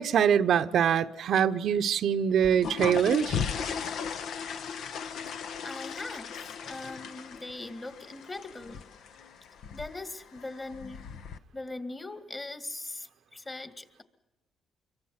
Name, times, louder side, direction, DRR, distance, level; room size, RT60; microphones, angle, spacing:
voice 1, 0.0-3.4, right 8 dB, 70° right, 0.8 m, -24 dB
sound 1, 2.3-11.4, left 6 dB, 75° left, 1.0 m, -37 dB
voice 2, 5.6-8.8 9.7-11.1 11.5-14.0, left 2 dB, 25° left, 2.1 m, -40 dB
26.0 x 23.0 x 5.7 m
cardioid pair, 90°, 0 cm